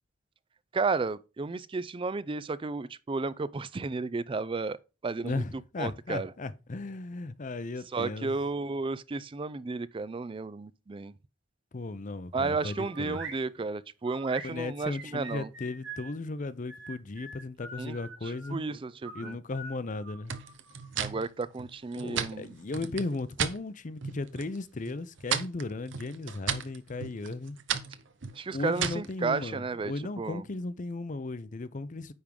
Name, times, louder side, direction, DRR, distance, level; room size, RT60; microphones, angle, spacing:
voice 1, 0.7-4.8 5.0-5.4 5.8-6.3 7.9-11.1 12.3-15.5 17.8-18.0 18.2-19.4 21.0-22.5 28.3-29.9 30.2-30.4, right 4 dB, 25° right, 0.4 m, -33 dB
voice 2, 5.2-8.4 11.7-13.2 14.4-18.6 19.1-20.3 22.0-27.6 28.5-32.1, left 3 dB, 40° left, 0.6 m, -36 dB
sound 1, 12.6-13.4 14.1-16.1 16.7-18.5 19.0-20.9, right 3 dB, 90° right, 2.9 m, -44 dB
sound 2, 20.3-23.6 24.0-24.6 24.9-29.1, right 7 dB, 65° right, 0.8 m, -35 dB
9.5 x 3.6 x 5.2 m
head